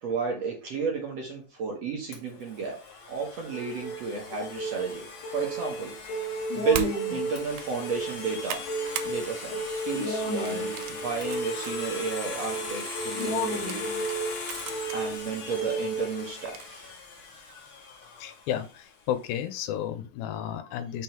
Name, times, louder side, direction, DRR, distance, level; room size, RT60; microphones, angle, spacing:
voice 1, 0.0-2.8 3.1-5.1 5.3-5.9 6.5-14.0 14.9-16.9, right 5 dB, 60° right, -1 dB, 2.0 m, -32 dB
Domestic sounds home sounds, 2.1-18.9, left 4 dB, 45° left, 2.0 m, -40 dB
sound 1, 3.5-16.5, right 1 dB, 70° left, 2.1 m, -34 dB
sound 2, 6.7-7.0 7.4-7.7 8.1-9.1 9.5-9.8 10.5-11.7 12.2-12.3 13.2-15.0 15.5-15.6 16.5-16.8, right 8 dB, 80° right, 2.3 m, -38 dB
voice 2, 18.2-21.0, left 10 dB, 90° left, 10 dB, 2.5 m, -32 dB
5.8 x 3.7 x 4.4 m, 0.33 s
omnidirectional pair, 4.0 m